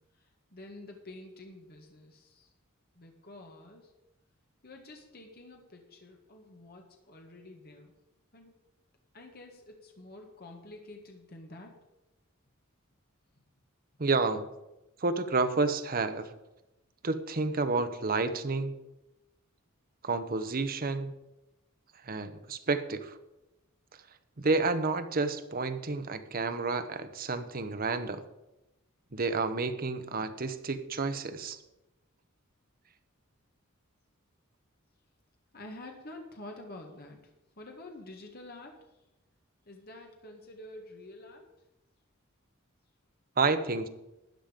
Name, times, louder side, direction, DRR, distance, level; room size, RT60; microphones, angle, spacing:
voice 1, 0.2-2.5 2.9-3.9 4.6-7.9 8.3-8.5 9.1-11.7 35.5-37.2 37.6-39.0 39.6-41.5, left 2 dB, 45° left, 2 dB, 1.7 m, -48 dB
voice 2, 14.0-14.5 15.0-16.3 17.0-18.7 20.0-21.1 22.0-23.2 24.4-28.2 29.1-31.6 43.4-43.9, right 3 dB, 45° right, 10 dB, 0.9 m, -30 dB
13.0 x 9.2 x 5.1 m, 0.95 s
head